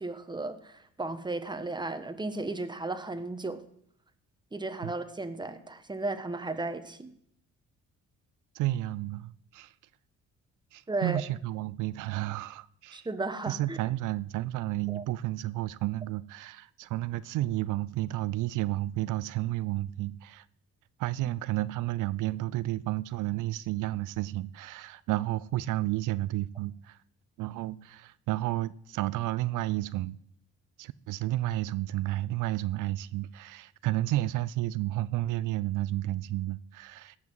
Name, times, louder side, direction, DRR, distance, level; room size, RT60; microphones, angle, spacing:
voice 1, 0.0-3.6 4.5-7.1 10.9-11.2 12.9-13.8 14.9-15.0, right 2 dB, 15° right, 1.3 m, -35 dB
voice 2, 8.5-9.7 10.7-13.1 13.5-20.5 21.0-27.0 27.4-30.2 30.8-37.2, right 16 dB, 85° right, 0.5 m, -31 dB
17.5 x 6.1 x 7.7 m
cardioid pair, 90°, 30 cm